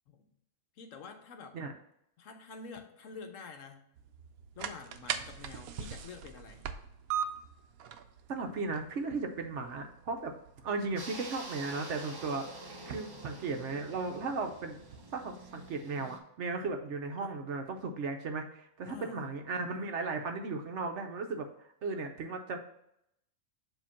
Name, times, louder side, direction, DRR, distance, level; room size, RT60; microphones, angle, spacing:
voice 1, 0.8-1.6 2.2-3.9 4.6-6.6 17.2-17.3 18.9-19.2, left 5 dB, 70° left, 6 dB, 1.1 m, -48 dB
sound 1, 4.0-15.7, right 8 dB, 85° right, 1.1 m, -43 dB
voice 2, 8.3-10.3 10.6-14.8 15.1-21.5 21.8-22.6, right 3 dB, 60° right, 5 dB, 1.0 m, -36 dB
sound 2, 11.0-16.2, right 2 dB, 25° right, 0.6 m, -47 dB
7.5 x 2.9 x 5.7 m, 0.76 s
omnidirectional pair, 1.4 m